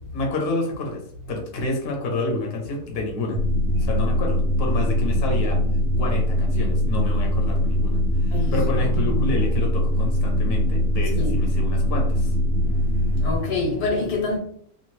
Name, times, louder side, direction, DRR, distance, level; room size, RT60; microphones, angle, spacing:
voice 1, 0.1-1.0 1.3-3.4 3.8-5.6 6.0-12.3, left 2 dB, 50° left, 0.8 m, -29 dB
sound 1, 3.3-13.3, equal, 60° right, 0.8 m, -22 dB
voice 2, 8.3-8.7 8.9-9.4 11.2-11.3 13.2-14.4, left 3 dB, 85° left, 1.5 m, -26 dB
2.9 x 2.4 x 3.0 m
omnidirectional pair, 1.6 m